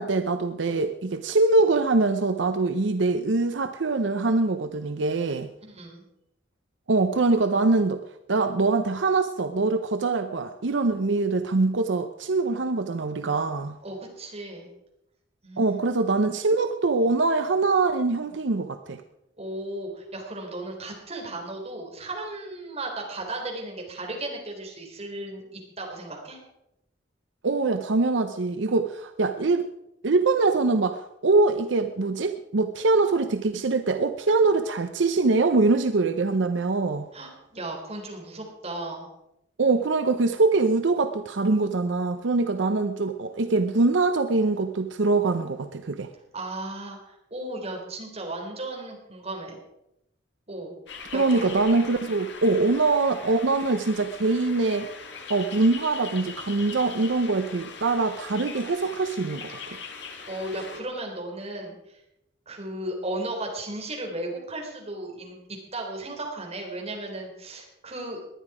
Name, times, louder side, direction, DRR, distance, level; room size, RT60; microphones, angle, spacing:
voice 1, 0.0-5.5 6.9-8.0 8.3-13.8 15.6-19.0 27.4-29.7 30.0-37.1 39.6-46.1 51.1-54.9 55.3-59.8, right 3 dB, 80° right, 9 dB, 0.7 m, -23 dB
voice 2, 5.6-6.0 13.8-14.7 15.4-15.8 19.4-26.4 37.1-39.1 46.3-49.6 50.5-50.8 51.1-51.5 60.3-62.0 62.5-68.3, right 2 dB, 35° right, 1 dB, 3.7 m, -35 dB
sound 1, 50.9-60.8, left 5 dB, 70° left, 2.1 m, -41 dB
19.0 x 11.0 x 4.9 m, 0.86 s
head